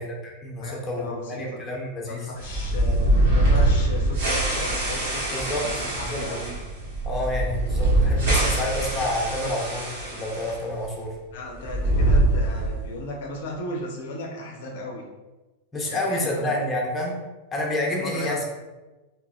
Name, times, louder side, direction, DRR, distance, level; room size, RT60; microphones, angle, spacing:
voice 1, 0.0-2.3 5.3-5.6 6.0-6.2 7.0-11.1 15.7-17.2 17.5-18.4, left 1 dB, 15° left, -2 dB, 0.8 m, -29 dB
voice 2, 0.6-1.6 2.1-6.5 11.3-15.0 15.8-16.6 17.9-18.4, left 1 dB, 55° left, -1 dB, 0.5 m, -35 dB
sound 1, 2.4-10.6 10.8-10.9 11.6-12.9, right 1 dB, 50° right, 1.3 m, -23 dB
3.8 x 2.8 x 2.4 m, 1.1 s
figure-of-eight pair, 90°, 0 cm